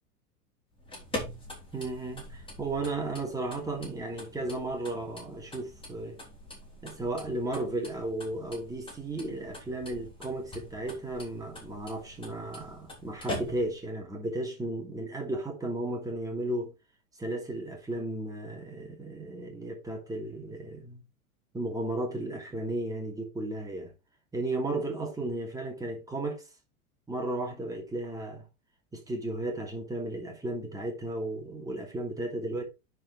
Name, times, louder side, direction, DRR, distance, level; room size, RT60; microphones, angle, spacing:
sound 1, 0.7-13.9, left 1 dB, 10° left, 4.0 m, -43 dB
voice 1, 1.7-6.2 6.8-16.7 17.2-21.0 21.5-23.9 24.3-26.5 27.1-28.4 28.9-32.6, right 2 dB, 10° right, 3.0 m, -34 dB
9.7 x 4.9 x 4.5 m
figure-of-eight pair, 90°, 43 cm